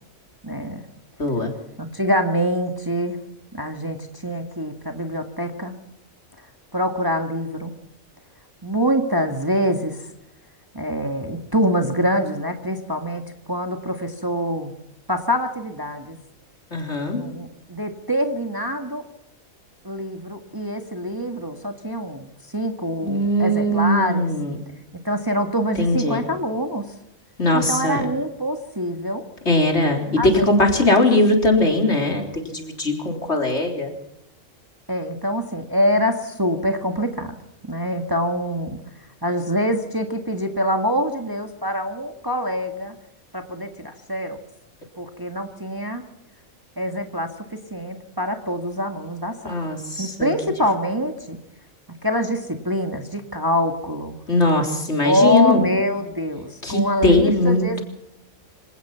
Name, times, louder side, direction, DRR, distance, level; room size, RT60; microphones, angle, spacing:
voice 1, 0.4-0.8 1.8-3.2 3.5-4.0 4.2-5.8 6.7-7.7 8.6-10.0 10.7-13.2 13.5-14.7 15.1-16.2 17.1-19.0 19.8-24.3 25.0-26.9 27.5-29.3 30.2-31.1 34.9-37.4 37.6-38.8 39.2-43.0 43.3-44.4 45.0-46.0 46.8-49.5 50.0-51.4 52.0-54.2 55.0-57.8, equal, 15° right, 5 dB, 1.8 m, -25 dB
voice 2, 1.2-1.5 16.7-17.2 23.0-24.6 25.8-26.2 27.4-28.0 29.5-33.9 49.4-50.3 54.3-55.7 56.6-57.8, left 1 dB, 55° left, 3 dB, 4.1 m, -20 dB
26.0 x 17.5 x 5.8 m, 0.83 s
omnidirectional pair, 1.4 m